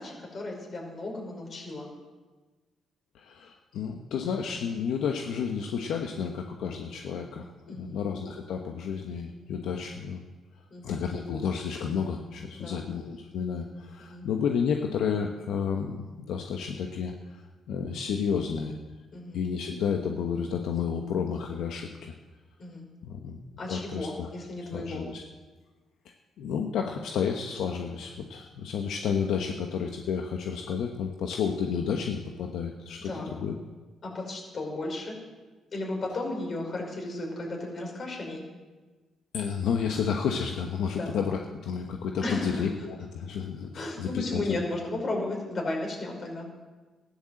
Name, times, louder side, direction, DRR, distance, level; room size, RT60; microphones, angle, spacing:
voice 1, 0.0-1.9 7.7-8.1 10.7-11.0 12.6-12.9 14.0-14.3 19.1-19.4 22.6-22.8 23.6-25.1 33.0-33.3 34.0-35.2 35.7-38.4 40.9-41.1 42.2-42.7 43.7-46.5, left 2 dB, 45° left, 0 dB, 5.4 m, -34 dB
voice 2, 3.1-10.2 10.8-17.4 17.7-18.7 19.3-22.1 23.0-23.4 23.7-24.3 24.6-25.2 26.4-33.6 39.3-44.6, left 6 dB, 80° left, 3 dB, 1.1 m, -31 dB
15.0 x 10.5 x 7.8 m, 1.3 s
cardioid pair, 90°, 0 cm